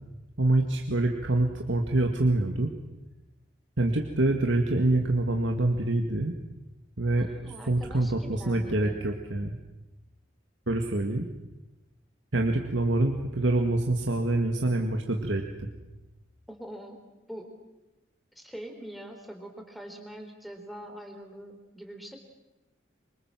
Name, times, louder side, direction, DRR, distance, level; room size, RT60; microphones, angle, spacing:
voice 1, 0.4-2.7 3.8-6.3 7.0-7.3 7.7-9.6 10.7-11.3 12.3-15.7, right 2 dB, 85° right, 3 dB, 2.1 m, -26 dB
voice 2, 7.2-9.0 16.5-17.0 17.3-17.5 18.4-22.2, equal, ahead, 4 dB, 3.9 m, -43 dB
26.5 x 24.5 x 7.7 m, 1.0 s
head